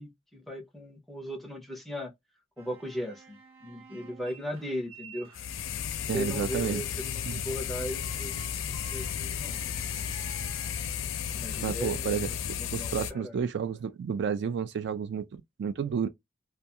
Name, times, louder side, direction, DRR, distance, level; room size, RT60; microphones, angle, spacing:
voice 1, 0.0-2.1 2.6-5.4 6.1-9.6 11.3-13.4, equal, ahead, 0.6 m, -38 dB
sound 1, 2.6-6.0 7.5-11.2, right 6 dB, 80° right, 0.9 m, -52 dB
sound 2, 5.3-13.1, left 8 dB, 70° left, 0.4 m, -34 dB
voice 2, 6.1-6.8 7.3-7.4 11.6-15.3 15.6-16.1, right 7 dB, 55° right, 0.3 m, -31 dB
2.3 x 2.3 x 2.8 m
head